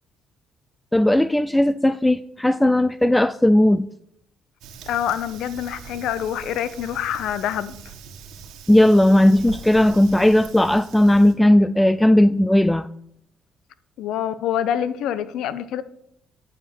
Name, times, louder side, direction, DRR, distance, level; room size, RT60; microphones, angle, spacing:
voice 1, 0.9-3.9 8.7-12.9, left 1 dB, 10° left, 0.4 m, -16 dB
Fire, 4.6-11.3, right 6 dB, 75° right, 1.5 m, -42 dB
voice 2, 4.9-7.7 14.0-15.8, left 10 dB, 70° left, 0.7 m, -26 dB
9.4 x 5.1 x 7.2 m
hypercardioid pair, 55°, 0 cm